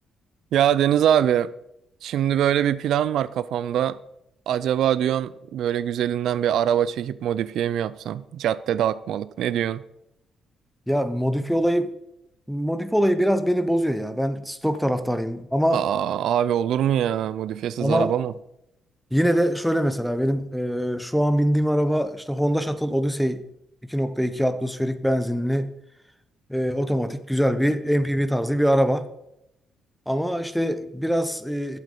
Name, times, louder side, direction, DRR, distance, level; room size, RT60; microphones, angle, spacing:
voice 1, 0.5-1.5 2.0-4.0 4.5-9.8 15.7-18.3, right 10 dB, 75° right, 0.3 m, -23 dB
voice 2, 10.9-11.9 12.5-15.8 17.8-18.1 19.1-23.4 23.8-25.7 26.5-29.1 30.1-31.8, equal, ahead, 0.7 m, -23 dB
8.2 x 7.6 x 5.3 m
cardioid pair, 90°, 0 cm